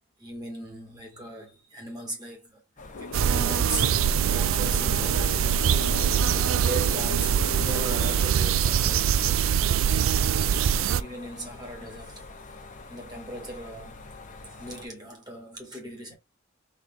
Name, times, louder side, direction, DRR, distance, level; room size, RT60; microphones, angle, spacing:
voice 1, 0.2-2.6 3.0-6.1 6.5-9.1 11.0-12.3 12.9-14.1 14.6-16.2, right 1 dB, 20° right, 2.0 m, -39 dB
sound 1, 2.8-14.9, left 2 dB, 40° left, 1.0 m, -45 dB
sound 2, 2.9-8.2, left 4 dB, 70° left, 0.7 m, -38 dB
sound 3, 3.1-11.0, right 8 dB, 70° right, 0.4 m, -23 dB
3.9 x 3.3 x 3.4 m
head